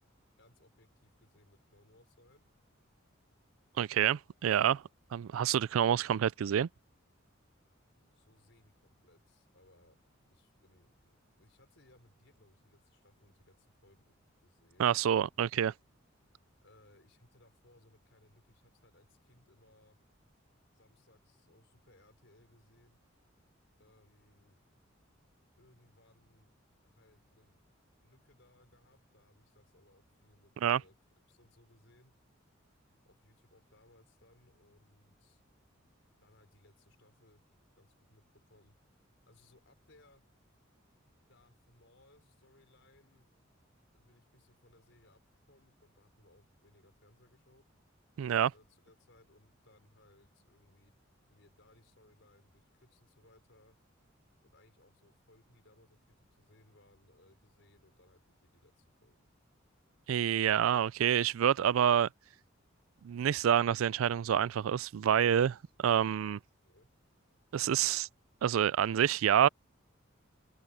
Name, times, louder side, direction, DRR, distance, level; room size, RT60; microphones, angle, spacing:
voice 1, 0.4-2.5 7.9-10.0 10.3-14.2 14.4-14.9 16.6-20.0 20.7-23.0 23.8-24.6 25.6-26.6 26.8-27.6 28.0-31.0 31.3-32.2 33.0-35.4 36.2-37.5 37.8-38.8 39.3-40.2 41.3-43.3 43.9-45.2 45.5-47.7 48.5-51.0 51.3-53.8 54.4-59.2 66.6-66.9, left 1 dB, 65° left, 5.2 m, -65 dB
voice 2, 3.8-4.8 5.1-6.7 14.8-15.7 30.6-30.8 48.2-48.5 60.1-62.1 63.0-66.4 67.5-68.1 68.4-69.5, right 9 dB, 85° right, 0.4 m, -27 dB
open air
head